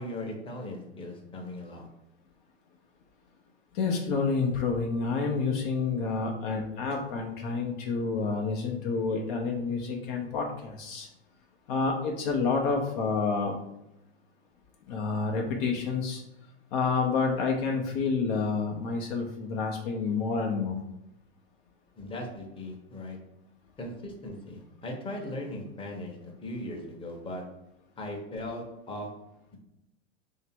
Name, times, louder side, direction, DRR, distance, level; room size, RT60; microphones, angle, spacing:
voice 1, 0.0-1.9 22.0-23.3 23.8-27.6 28.0-29.2, left 1 dB, 15° left, 1 dB, 0.9 m, -38 dB
voice 2, 3.7-11.1 11.7-13.6 14.9-16.2 16.7-20.8, left 4 dB, 50° left, 1 dB, 0.8 m, -29 dB
3.3 x 2.8 x 4.4 m, 0.82 s
hypercardioid pair, 105°, 34 cm